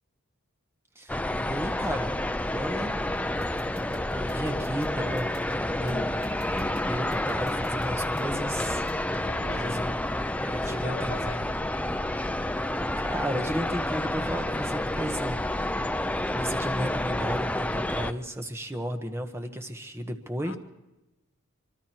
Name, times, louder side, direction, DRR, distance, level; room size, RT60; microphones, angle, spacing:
sound 1, 1.1-18.1, left 1 dB, 5° left, 0.6 m, -29 dB
voice 1, 1.5-2.1 2.5-3.0 3.6-3.8 4.1-5.4 5.8-8.8 9.5-10.0 10.4-11.1 12.4-12.5 13.0-15.5 16.3-20.6, equal, 10° right, 5 dB, 1.4 m, -34 dB
sound 2, 3.4-9.0, right 1 dB, 75° right, 3.0 m, -49 dB
voice 2, 9.3-9.8 10.5-11.5 20.4-20.6, left 2 dB, 70° left, 2 dB, 2.0 m, -41 dB
24.0 x 24.0 x 4.6 m, 0.96 s
head